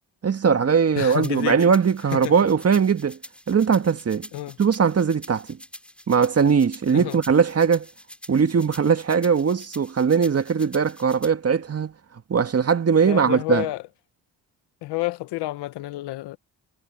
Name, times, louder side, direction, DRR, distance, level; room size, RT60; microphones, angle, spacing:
voice 1, 0.2-3.2 3.5-4.3 4.6-5.6 6.1-7.9 8.3-11.9 12.3-13.7, right 6 dB, 40° right, 1.8 m, -20 dB
voice 2, 1.0-1.6 2.1-2.3 4.3-4.6 6.9-7.2 13.0-13.8 14.8-16.4, left 18 dB, 85° left, 1.3 m, -29 dB
sound 1, 1.0-11.3, equal, 5° left, 6.3 m, -45 dB
supercardioid pair, 70°, 39 cm